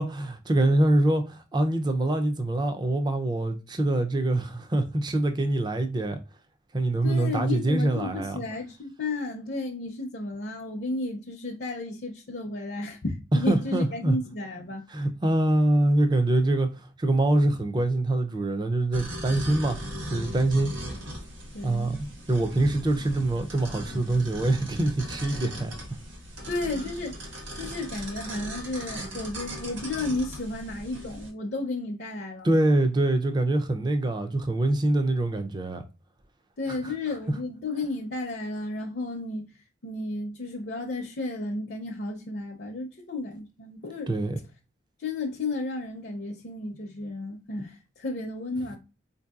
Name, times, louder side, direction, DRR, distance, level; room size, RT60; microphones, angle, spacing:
voice 1, 0.0-6.2 6.7-8.4 13.5-14.2 14.9-19.8 20.1-20.7 21.6-25.7 32.4-35.8 36.7-36.9 44.1-44.4, right 1 dB, 25° right, 0.4 m, -24 dB
voice 2, 7.0-14.8 21.5-22.1 26.5-27.2 27.5-32.5 36.6-39.5 39.8-44.1 45.0-48.8, left 2 dB, 55° left, 0.5 m, -33 dB
sound 1, 18.9-31.3, right 1 dB, 85° right, 1.4 m, -38 dB
4.4 x 2.6 x 2.3 m
head